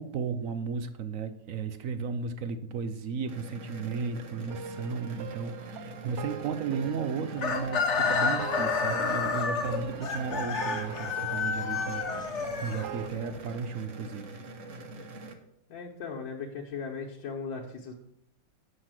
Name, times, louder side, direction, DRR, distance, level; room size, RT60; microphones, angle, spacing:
voice 1, 0.0-14.3, right 5 dB, 65° right, 11 dB, 0.8 m, -34 dB
sound 1, 3.3-15.3, right 2 dB, 50° right, 1.2 m, -44 dB
sound 2, 4.5-13.1, right 8 dB, 90° right, 0.6 m, -42 dB
Chicken rooster, 7.4-13.3, left 5 dB, 45° left, 1.1 m, -30 dB
voice 2, 15.7-17.9, left 5 dB, 75° left, -1 dB, 1.7 m, -38 dB
7.8 x 6.0 x 7.4 m, 0.74 s
omnidirectional pair, 2.0 m